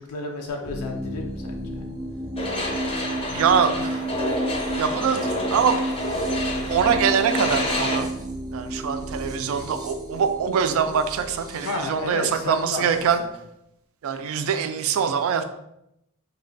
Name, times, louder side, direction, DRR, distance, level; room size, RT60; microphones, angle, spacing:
voice 1, 0.0-1.9 11.6-12.9, left 3 dB, 80° left, 3 dB, 0.4 m, -32 dB
sound 1, 0.6-13.1, right 1 dB, 20° right, 0.6 m, -32 dB
sound 2, 2.4-8.0, left 1 dB, 25° left, 0.5 m, -28 dB
voice 2, 3.3-4.0 4.8-5.8 6.7-8.1 8.5-13.2 14.0-15.4, right 7 dB, 70° right, 8 dB, 0.3 m, -23 dB
3.2 x 2.2 x 3.8 m, 0.82 s
head